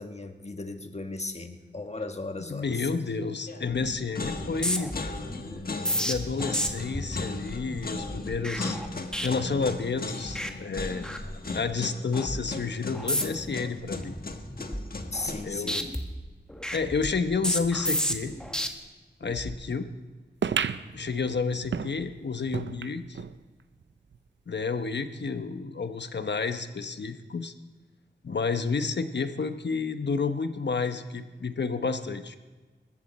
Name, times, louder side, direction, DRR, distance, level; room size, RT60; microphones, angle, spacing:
voice 1, 0.0-2.9 15.1-15.9, left 2 dB, 35° left, 6 dB, 1.5 m, -36 dB
voice 2, 2.4-4.9 5.9-8.8 9.2-11.1 11.5-14.2 15.4-15.9 16.7-18.3 19.2-19.9 20.9-23.2 24.5-27.5 28.2-32.4, left 4 dB, 70° left, 9 dB, 1.0 m, -30 dB
sound 1, 3.5-3.8 4.2-15.6, left 3 dB, 55° left, 1.4 m, -37 dB
sound 2, 3.7-4.0 4.2-10.0 10.3-10.5 10.8-11.7 12.1-12.4 12.9-13.5 13.9-15.4 15.7-18.7 19.2-19.6, equal, 5° left, 1.5 m, -33 dB
sound 3, 20.4-23.4 23.8-23.9 24.1-24.2 25.0-25.1, right 7 dB, 85° right, 0.5 m, -33 dB
20.0 x 14.5 x 4.3 m, 1.3 s
wide cardioid pair, 55°, 19 cm